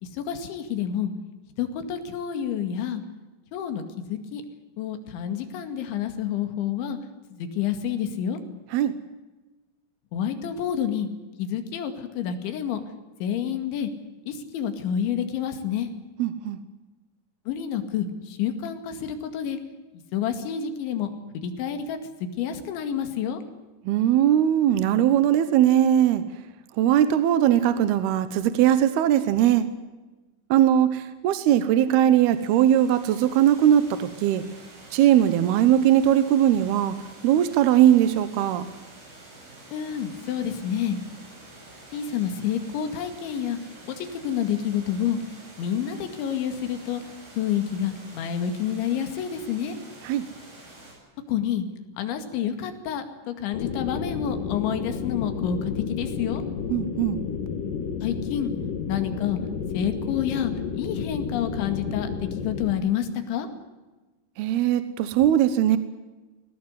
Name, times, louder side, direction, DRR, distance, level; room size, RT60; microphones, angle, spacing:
voice 1, 0.0-1.1 1.6-3.0 3.5-4.4 4.8-7.0 7.3-8.4 10.1-11.1 11.4-12.8 13.2-13.9 14.3-15.9 17.5-19.6 20.1-23.4 39.7-41.0 41.9-43.6 43.8-45.2 45.6-47.0 47.4-49.8 51.3-51.7 52.0-56.4 58.0-58.5 58.9-59.4 59.7-63.5, left 9 dB, 80° left, 7 dB, 4.5 m, -28 dB
voice 2, 16.2-16.6 23.8-26.2 26.8-29.7 30.5-34.4 34.9-37.0 37.2-38.7 50.0-50.2 56.7-57.2 64.4-65.8, right 11 dB, 70° right, 12 dB, 2.7 m, -20 dB
Water, 31.8-50.9, right 2 dB, 50° right, 9.7 m, -48 dB
sound 1, 53.5-62.7, left 6 dB, 60° left, 2.5 m, -31 dB
22.0 x 18.0 x 9.6 m, 1.2 s
omnidirectional pair, 5.4 m